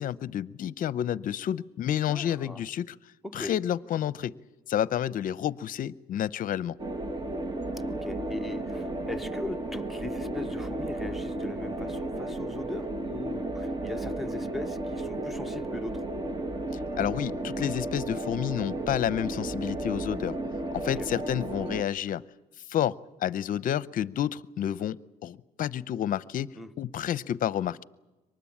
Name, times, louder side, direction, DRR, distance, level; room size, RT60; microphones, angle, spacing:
voice 1, 0.0-2.9 3.3-4.3 4.7-6.7 17.0-20.4 20.7-22.2 22.7-23.0 23.2-25.0 25.2-27.8, left 10 dB, 55° left, 0.7 m, -30 dB
voice 2, 2.1-2.6 3.2-3.5 7.9-16.0 20.8-21.1 26.5-26.7, left 1 dB, ahead, 0.9 m, -39 dB
sound 1, 6.8-21.8, right 1 dB, 25° right, 1.3 m, -33 dB
24.0 x 20.0 x 8.7 m
cardioid pair, 110°, 17 cm